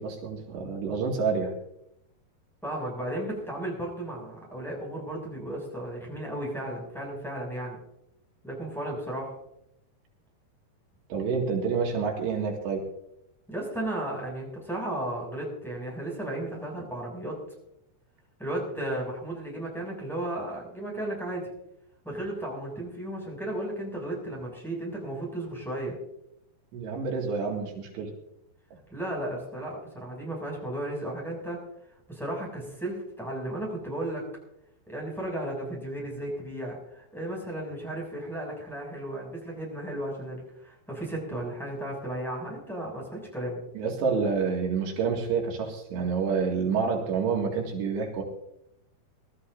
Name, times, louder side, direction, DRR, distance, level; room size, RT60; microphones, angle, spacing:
voice 1, 0.0-1.6 11.1-12.8 26.7-28.1 43.7-48.2, right 5 dB, 85° right, 0 dB, 4.3 m, -28 dB
voice 2, 2.6-7.8 8.4-9.3 13.5-17.4 18.4-21.5 22.0-25.9 28.9-31.6 32.1-34.2 34.9-43.6, right 1 dB, ahead, -3 dB, 6.0 m, -34 dB
23.5 x 13.5 x 2.6 m, 0.80 s
omnidirectional pair, 4.8 m